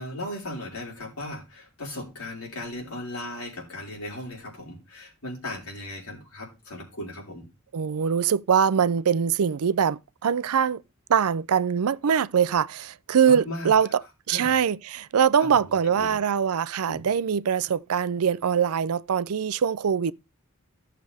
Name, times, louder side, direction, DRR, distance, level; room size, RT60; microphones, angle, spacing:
voice 1, 0.0-7.5 13.3-13.7 14.3-14.5 15.4-16.2 16.9-17.1, left 1 dB, 85° left, 4.4 m, -37 dB
voice 2, 7.7-10.8 11.1-14.0 14.3-20.1, right 7 dB, 85° right, 0.5 m, -23 dB
14.5 x 6.7 x 3.5 m
head